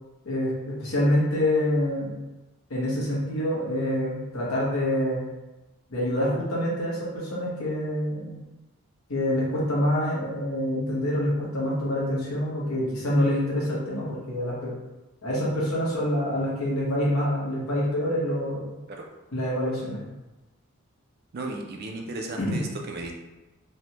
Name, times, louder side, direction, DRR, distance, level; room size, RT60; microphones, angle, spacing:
voice 1, 0.2-2.1 2.7-5.3 5.9-8.4 9.1-14.7 15.2-18.6 19.3-20.0 22.4-22.6, left 1 dB, 85° left, -6 dB, 1.0 m, -26 dB
voice 2, 21.3-23.1, right 2 dB, 45° right, 2 dB, 0.4 m, -35 dB
3.3 x 2.1 x 2.9 m, 1.1 s
head